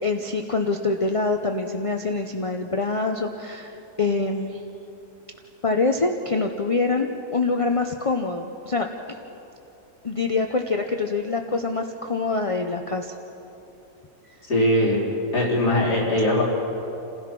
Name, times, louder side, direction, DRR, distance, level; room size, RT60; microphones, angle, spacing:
voice 1, 0.0-3.7 4.0-4.6 5.6-9.2 10.0-13.2, left 3 dB, 35° left, 4 dB, 0.5 m, -25 dB
voice 2, 14.5-15.0 15.3-16.4, left 1 dB, 85° left, -5 dB, 5.0 m, -20 dB
28.5 x 16.0 x 6.1 m, 3.0 s
omnidirectional pair, 1.7 m